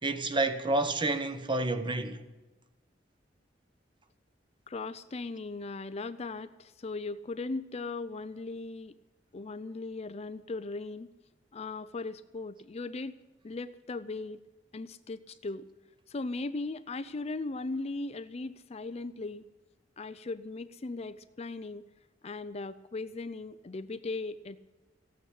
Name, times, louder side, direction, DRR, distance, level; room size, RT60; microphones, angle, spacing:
voice 1, 0.0-2.2, right 2 dB, 25° right, 1.0 m, -29 dB
voice 2, 4.7-8.9 9.3-11.1 11.5-13.2 13.4-14.4 14.7-15.7 16.1-19.5 20.0-21.9 22.2-24.6, left 3 dB, 35° left, 0.5 m, -38 dB
15.0 x 9.2 x 9.9 m
head